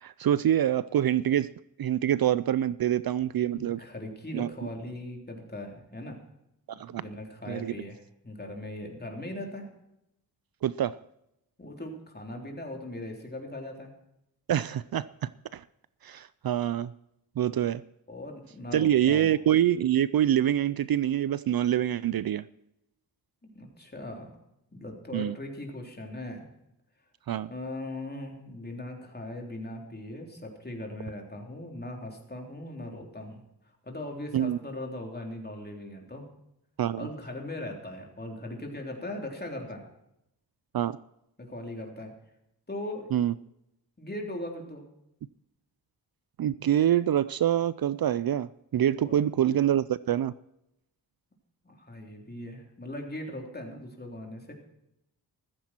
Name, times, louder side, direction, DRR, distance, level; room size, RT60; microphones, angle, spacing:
voice 1, 0.0-1.5 1.8-3.8 4.3-4.5 6.8-7.0 7.5-7.7 10.6-11.0 14.5-15.6 16.0-16.9 17.4-17.8 18.7-22.5 25.1-25.3 27.3-27.5 34.3-34.6 36.8-37.1 40.7-41.0 43.1-43.3 46.4-50.3, right 11 dB, 60° right, 18 dB, 0.5 m, -26 dB
voice 2, 3.6-6.2 6.9-9.7 11.6-13.9 18.1-19.3 23.5-24.3 24.7-26.5 27.5-33.4 33.8-36.3 37.0-39.8 41.4-42.1 42.7-43.1 44.0-44.9 49.0-49.2 51.6-54.5, left 1 dB, 25° left, 1 dB, 3.6 m, -39 dB
14.5 x 14.5 x 4.4 m, 0.83 s
wide cardioid pair, 100°, 41 cm